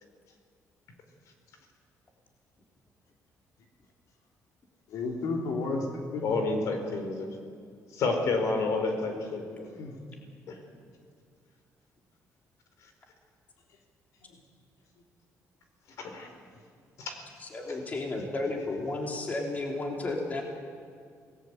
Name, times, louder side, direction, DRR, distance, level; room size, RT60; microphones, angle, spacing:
voice 1, 4.9-6.4 9.5-10.0 14.2-14.3, left 3 dB, 85° left, 1 dB, 3.9 m, -33 dB
voice 2, 6.2-7.3 7.9-9.7 10.5-10.6 16.0-16.3 17.0-17.2, left 3 dB, 65° left, 5 dB, 4.5 m, -29 dB
voice 3, 17.4-20.4, left 2 dB, 30° left, 1 dB, 3.4 m, -33 dB
27.5 x 19.5 x 8.2 m, 2.2 s
cardioid pair, 155°, 6 cm